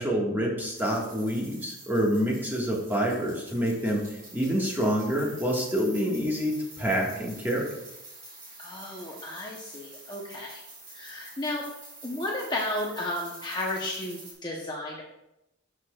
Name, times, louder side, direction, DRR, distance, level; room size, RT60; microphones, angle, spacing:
voice 1, 0.0-4.0 4.3-7.6, equal, 10° right, -2 dB, 1.5 m, -27 dB
sound 1, 0.7-14.3, right 2 dB, 40° right, 2.9 m, -47 dB
voice 2, 8.6-10.6 10.9-11.6 12.0-15.0, left 1 dB, 20° left, -2 dB, 0.8 m, -33 dB
13.0 x 5.9 x 2.3 m, 0.89 s
head